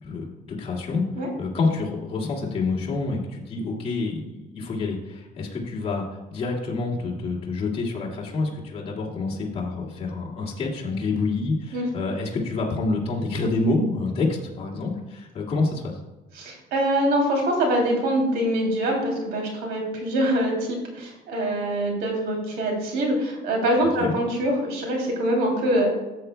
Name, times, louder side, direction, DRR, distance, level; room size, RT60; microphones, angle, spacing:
voice 1, 0.0-1.0 1.4-6.0 6.3-16.0 24.0-24.1, left 3 dB, 35° left, -5 dB, 2.2 m, -27 dB
voice 2, 16.3-25.9, right 1 dB, 85° right, 0 dB, 3.0 m, -24 dB
13.5 x 7.9 x 2.2 m, 1.1 s
cardioid pair, 110°, 17 cm